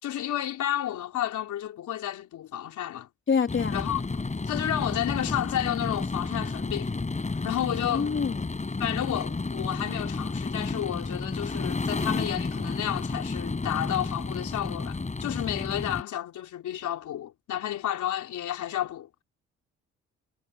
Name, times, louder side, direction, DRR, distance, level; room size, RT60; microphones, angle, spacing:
voice 1, 0.0-3.1 3.7-4.0 4.5-6.9 7.4-8.1 8.8-19.2, left 11 dB, 75° left, 4.1 m, -31 dB
voice 2, 3.3-3.8 7.8-8.5, left 6 dB, 40° left, 3.5 m, -26 dB
sound 1, 3.5-16.0, left 3 dB, 25° left, 5.9 m, -31 dB
cardioid pair, 90°, 30 cm